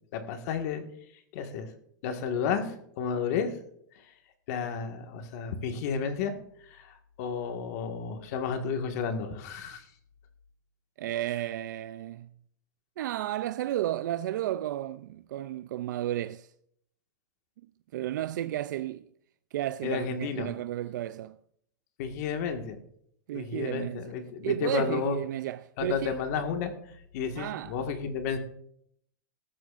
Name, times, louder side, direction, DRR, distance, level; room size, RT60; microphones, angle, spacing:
voice 1, 0.1-0.8 1.3-1.7 2.0-3.6 3.9-4.0 4.5-6.3 6.7-9.8 19.8-20.5 22.0-22.8 23.3-25.2 25.8-26.7 27.1-28.4, left 6 dB, 55° left, 1.8 m, -32 dB
voice 2, 11.0-12.3 13.0-16.5 17.9-19.1 19.5-21.4 23.3-24.1 24.4-26.2 27.4-27.7, right 13 dB, 75° right, 0.4 m, -33 dB
18.5 x 14.0 x 2.5 m
supercardioid pair, 145°, 10 cm